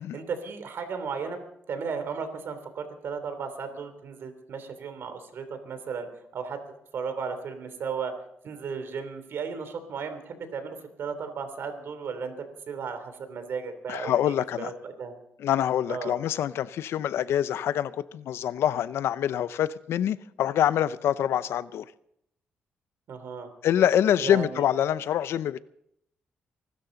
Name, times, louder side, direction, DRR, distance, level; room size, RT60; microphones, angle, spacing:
voice 1, 0.1-1.4 1.7-6.1 6.3-8.1 8.4-15.1 15.9-16.2 23.1-23.5 24.2-24.6, right 5 dB, 65° right, 9 dB, 3.0 m, -35 dB
voice 2, 13.9-14.7 15.4-21.8 23.6-25.6, left 10 dB, 80° left, 16 dB, 0.6 m, -25 dB
25.0 x 12.5 x 3.9 m, 0.75 s
cardioid pair, 90°, 4 cm